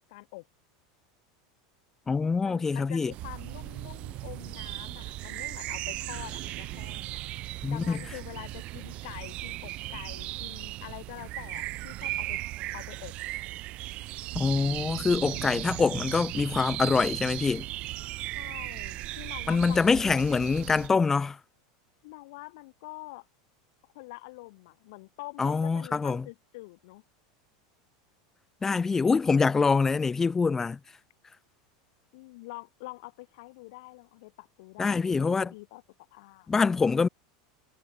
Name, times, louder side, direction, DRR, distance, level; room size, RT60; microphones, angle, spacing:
voice 1, 0.1-0.4 2.4-7.2 7.7-12.4 12.7-13.1 18.3-20.7 22.0-23.3 23.9-27.0 32.1-35.8 36.1-36.5, left 23 dB, 65° left, 7.7 m, -45 dB
voice 2, 2.1-3.1 7.6-8.0 14.3-17.7 19.5-21.4 25.4-26.3 28.6-30.8 34.8-35.5 36.5-37.1, left 4 dB, 15° left, 1.5 m, -25 dB
sound 1, 3.1-20.9, right 18 dB, 45° right, 1.1 m, -37 dB
supercardioid pair, 135°, 3 cm